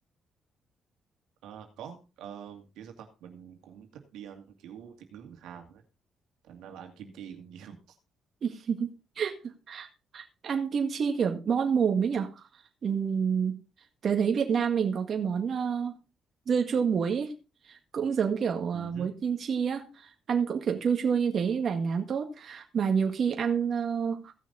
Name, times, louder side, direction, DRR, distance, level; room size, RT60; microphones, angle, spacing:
voice 1, 1.4-5.8 6.4-7.8 18.7-19.1, right 8 dB, 85° right, 4 dB, 2.3 m, -46 dB
voice 2, 8.4-8.9 9.2-9.9 10.1-12.5 12.8-13.6 14.0-16.0 16.5-17.3 17.6-24.3, right 6 dB, 55° right, 4 dB, 1.8 m, -28 dB
16.5 x 6.3 x 4.0 m, 0.30 s
cardioid pair, 90°, 0 cm